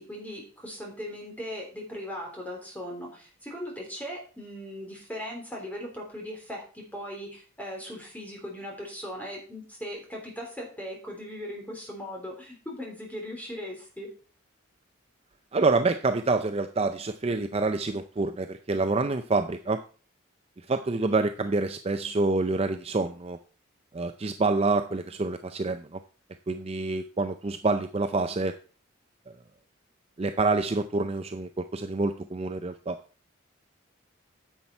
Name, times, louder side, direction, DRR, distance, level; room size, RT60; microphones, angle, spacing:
voice 1, 0.0-14.1, equal, 10° left, -1 dB, 3.4 m, -39 dB
voice 2, 15.5-19.8 20.7-23.4 23.9-26.0 26.5-28.5 30.2-33.0, right 3 dB, 30° right, 8 dB, 0.5 m, -27 dB
10.0 x 7.2 x 4.3 m, 0.38 s
head